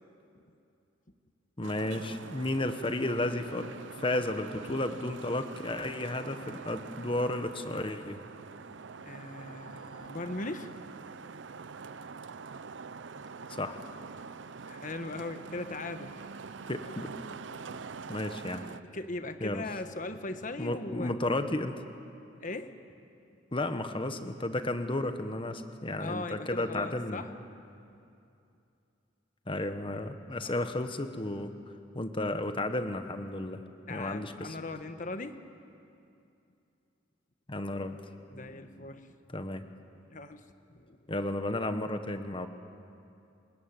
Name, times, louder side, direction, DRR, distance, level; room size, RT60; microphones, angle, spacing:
voice 1, 1.6-3.7 4.0-8.2 13.5-13.8 16.7-17.1 18.1-18.6 19.4-19.6 20.6-21.8 23.5-27.2 29.5-31.5 31.9-33.6 33.9-34.6 37.5-38.0 39.3-39.6 41.1-42.5, left 1 dB, 25° left, 8 dB, 1.3 m, -33 dB
Traffic noise roadway noise, 1.6-18.8, right 5 dB, 65° right, 0.6 m, -45 dB
voice 2, 9.0-10.7 14.7-16.2 18.9-21.1 22.4-22.7 26.0-27.3 30.4-30.7 33.9-35.3 38.3-39.1 40.1-40.4 40.8-41.0, left 2 dB, 45° left, 8 dB, 1.4 m, -39 dB
30.0 x 20.0 x 9.1 m, 2.6 s
head